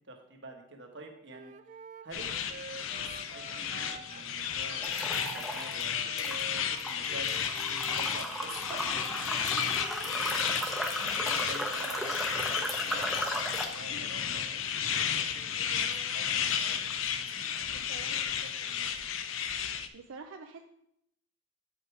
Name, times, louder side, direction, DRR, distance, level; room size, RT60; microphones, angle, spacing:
voice 1, 0.1-10.4 11.0-15.2 15.5-17.1 17.4-18.9, right 2 dB, 60° right, 3 dB, 1.3 m, -49 dB
Wind instrument woodwind instrument, 1.3-4.3 4.7-8.1, right 5 dB, 40° right, 0.3 m, -48 dB
sound 1, 2.1-19.9, left 8 dB, 85° left, 0.5 m, -33 dB
sound 2, 4.8-5.8 6.2-13.8, right 1 dB, ahead, 0.8 m, -36 dB
voice 2, 17.7-18.2 19.9-20.6, right 4 dB, 90° right, 4 dB, 0.5 m, -46 dB
8.3 x 5.1 x 4.8 m, 0.76 s
head